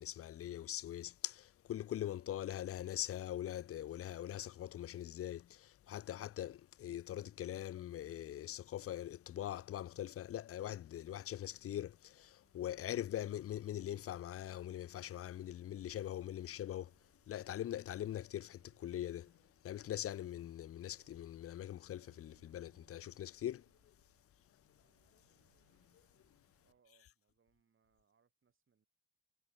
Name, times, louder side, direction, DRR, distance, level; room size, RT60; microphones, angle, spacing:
voice 1, 0.0-17.0 17.3-23.9 25.1-25.2 25.9-26.2, left 12 dB, 50° left, 0.6 m, -42 dB
sound 1, 11.9-26.8, right 15 dB, 85° right, 2.8 m, -76 dB
voice 2, 26.6-28.9, right 6 dB, 40° right, 7.8 m, -76 dB
cardioid pair, 90°, 30 cm